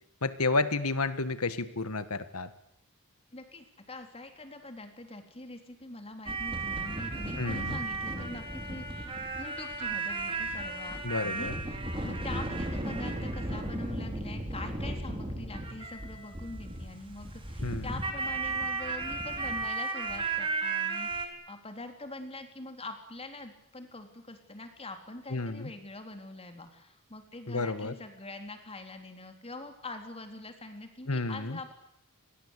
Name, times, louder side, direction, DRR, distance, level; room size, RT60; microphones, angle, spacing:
voice 1, 0.2-2.5 7.4-7.8 11.0-11.5 17.6-17.9 25.3-25.7 27.5-27.9 31.1-31.6, left 3 dB, 70° left, 12 dB, 1.7 m, -31 dB
voice 2, 3.3-31.7, left 2 dB, 25° left, 6 dB, 3.8 m, -44 dB
sound 1, 6.3-21.3, right 3 dB, 25° right, 4.6 m, -34 dB
28.0 x 22.0 x 8.4 m, 0.74 s
head